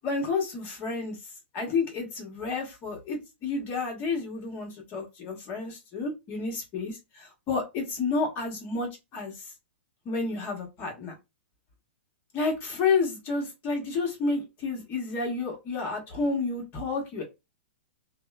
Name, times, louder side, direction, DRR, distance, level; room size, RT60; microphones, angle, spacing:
voice 1, 0.0-1.2 1.5-9.5 10.0-11.2 12.3-17.2, left 4 dB, 30° left, 1.1 m, -30 dB
2.9 x 2.1 x 2.2 m
hypercardioid pair, 140°, 7 cm